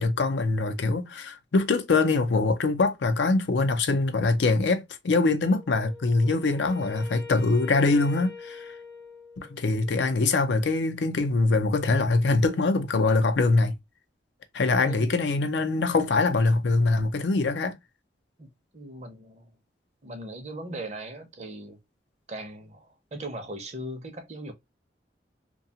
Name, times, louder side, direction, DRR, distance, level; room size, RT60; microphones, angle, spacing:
voice 1, 0.0-8.7 9.4-13.8 14.5-17.8, left 3 dB, 80° left, 0.5 m, -23 dB
Wind instrument woodwind instrument, 5.4-9.8, left 4 dB, 20° left, 0.5 m, -43 dB
voice 2, 18.4-19.5 20.0-21.8 22.3-24.5, right 1 dB, 40° right, 0.6 m, -39 dB
2.7 x 2.2 x 2.7 m
head